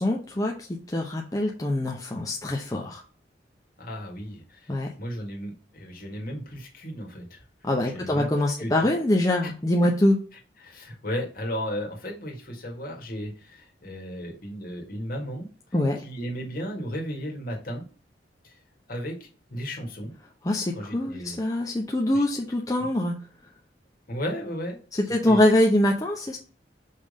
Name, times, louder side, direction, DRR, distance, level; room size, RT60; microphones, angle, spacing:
voice 1, 0.0-3.0 4.7-4.9 7.6-10.2 15.7-16.0 20.4-23.2 24.9-26.4, left 1 dB, 20° left, 0 dB, 0.7 m, -24 dB
voice 2, 3.8-4.7 5.0-7.4 7.8-8.3 8.6-8.9 9.4-9.5 10.6-15.5 16.0-17.8 18.4-18.5 18.9-20.1 20.7-21.4 22.1-22.3 24.1-24.8 25.1-25.4, equal, 55° left, 0 dB, 1.9 m, -34 dB
5.5 x 3.5 x 5.2 m, 0.38 s
head